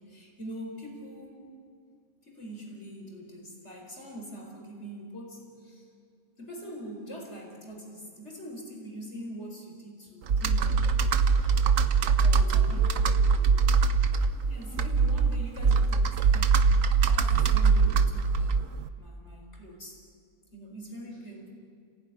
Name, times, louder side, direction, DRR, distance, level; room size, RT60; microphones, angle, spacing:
voice 1, 0.0-1.5 2.2-5.9 6.4-10.9 12.3-12.9 14.4-20.0 20.5-21.5, equal, 45° left, 0 dB, 4.9 m, -43 dB
Computer keyboard, 10.3-18.9, right 5 dB, 65° right, 1.3 m, -23 dB
voice 2, 12.1-13.9 21.1-21.2, left 1 dB, 45° right, -4 dB, 8.1 m, -47 dB
30.0 x 17.0 x 9.8 m, 2.3 s
omnidirectional pair, 1.6 m